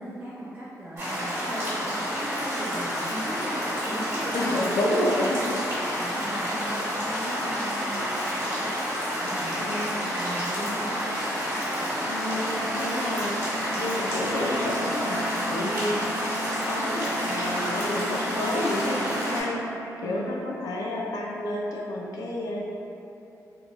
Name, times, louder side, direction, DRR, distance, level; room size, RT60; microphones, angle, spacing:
voice 1, 0.0-4.7 5.4-5.7 5.9-11.1 11.5-12.6 13.6-13.8 20.0-20.3, right 1 dB, 30° right, -13 dB, 0.6 m, -38 dB
sound 1, 1.0-19.4, equal, 50° right, 1.3 m, -29 dB
voice 2, 4.3-5.4 9.6-10.0 12.1-16.2 16.5-22.7, left 1 dB, 85° left, -2 dB, 0.4 m, -30 dB
Wind instrument woodwind instrument, 12.1-20.5, right 2 dB, 65° left, 1.3 m, -38 dB
2.9 x 2.1 x 2.9 m, 2.8 s
wide cardioid pair, 155°, 6 cm